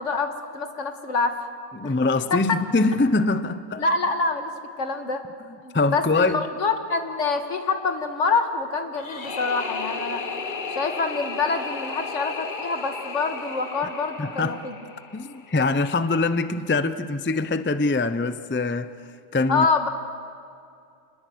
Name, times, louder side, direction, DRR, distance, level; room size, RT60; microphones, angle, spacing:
voice 1, 0.0-1.3 1.8-1.9 3.8-4.5 4.8-5.2 5.6-10.2 10.7-14.7 19.5-19.9, left 4 dB, 70° left, 2.0 m, -26 dB
voice 2, 1.8-3.8 5.7-6.4 14.2-14.6 15.1-18.9 19.3-19.7, left 3 dB, 15° left, 0.4 m, -23 dB
sound 1, 8.9-15.9, left 4 dB, 40° left, 1.2 m, -34 dB
27.5 x 20.5 x 7.9 m
omnidirectional pair, 1.3 m